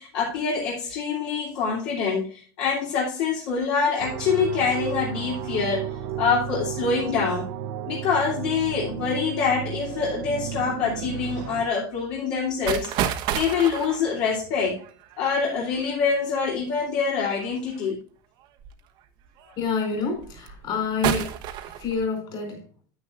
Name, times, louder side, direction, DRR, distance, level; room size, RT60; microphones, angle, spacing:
voice 1, 0.0-7.5 7.9-14.8 15.2-18.0, left 5 dB, 60° left, 2.9 m, -25 dB
sound 1, 4.0-11.7, right 9 dB, 70° right, 1.0 m, -33 dB
sound 2, 12.7-16.2 17.3-17.8 18.6-18.7 19.3-19.6 20.2-20.7 21.0-22.0, right 10 dB, 45° right, 1.0 m, -30 dB
voice 2, 19.6-21.4 21.8-22.6, left 5 dB, 40° left, 4.5 m, -28 dB
9.4 x 9.4 x 2.5 m
supercardioid pair, 160°, 11 cm